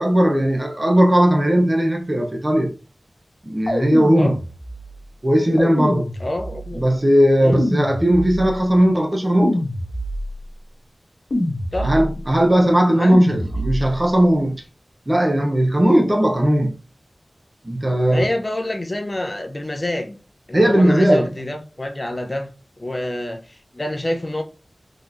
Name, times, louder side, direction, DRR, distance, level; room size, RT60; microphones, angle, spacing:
voice 1, 0.0-2.7 3.4-4.4 5.2-6.1 6.7-9.6 11.8-14.6 15.1-16.7 17.6-18.2 20.5-21.3, equal, 30° right, 0.9 m, -17 dB
sound 1, 3.7-4.9 5.6-6.7 7.5-8.6 9.4-10.4 11.3-12.2 13.1-14.0, left 1 dB, 60° left, 1.3 m, -25 dB
voice 2, 6.2-6.8 7.4-7.6 11.7-11.9 12.9-13.2 18.0-20.2 20.5-22.5 22.8-24.4, left 1 dB, 35° left, 0.8 m, -27 dB
3.8 x 3.2 x 2.6 m
wide cardioid pair, 60°, 0 cm